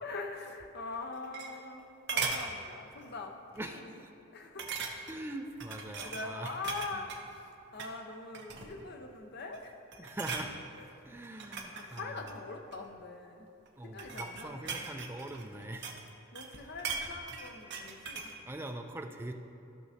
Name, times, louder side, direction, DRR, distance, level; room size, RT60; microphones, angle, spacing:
voice 1, 0.0-1.8 2.1-3.3 3.6-3.9 4.3-4.6 6.0-7.5 7.7-9.8 10.7-10.8 11.7-13.5 13.8-14.9 15.2-15.8 16.3-18.3, left 3 dB, 45° left, 4 dB, 0.7 m, -43 dB
sound 1, 0.9-1.8 2.1-2.5 3.0-3.2 3.5-3.6 4.6-5.2 5.6-7.2 7.7-8.0 8.3-8.9 9.4-9.6 9.9-10.5 11.2-12.8 13.6-16.1 16.3-18.4 18.7-18.8, right 5 dB, 50° right, 0.8 m, -39 dB
voice 2, 3.6-4.1 5.1-6.5 10.0-10.5 11.0-12.2 13.8-15.9 18.4-19.3, right 1 dB, 10° right, 4 dB, 0.4 m, -42 dB
14.5 x 6.1 x 2.7 m, 2.6 s
head